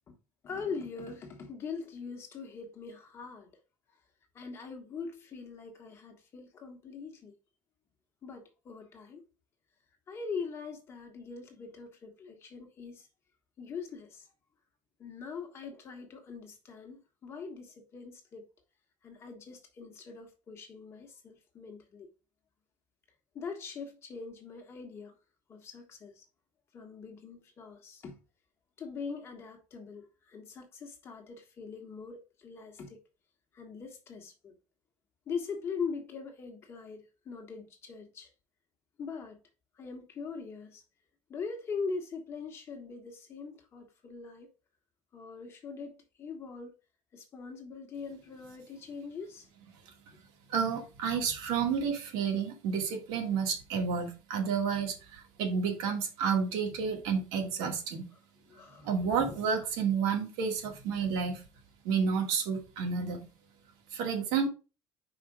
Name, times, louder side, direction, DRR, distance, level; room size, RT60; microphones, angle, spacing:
voice 1, 0.4-3.5 4.3-7.4 8.2-9.2 10.1-13.1 13.6-14.3 15.0-18.5 19.0-22.1 23.3-25.1 25.5-26.2 26.7-28.2 28.8-33.0 33.5-34.5 35.3-38.3 39.0-39.4 39.8-40.8 41.3-44.5 45.1-46.7 47.1-49.5 58.5-59.4, left 5 dB, 30° left, 1.4 m, -42 dB
voice 2, 50.5-58.1 58.8-61.4 61.8-63.2 63.9-64.5, right 6 dB, 85° right, 2.2 m, -30 dB
5.1 x 4.9 x 4.7 m
cardioid pair, 170°, 9 cm